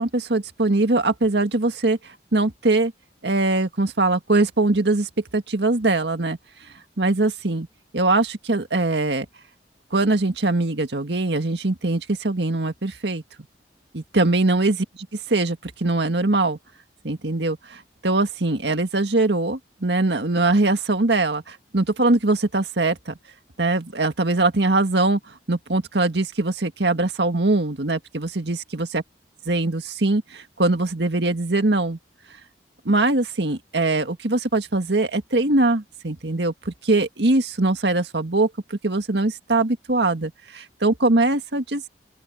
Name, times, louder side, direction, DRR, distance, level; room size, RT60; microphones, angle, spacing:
voice 1, 0.0-2.0 2.3-2.9 3.2-6.4 7.0-7.7 7.9-9.3 9.9-13.2 13.9-14.9 15.3-16.6 17.0-23.1 23.6-25.2 25.5-29.0 29.5-32.0 32.9-41.9, right 2 dB, 75° right, 1.8 m, -22 dB
open air
head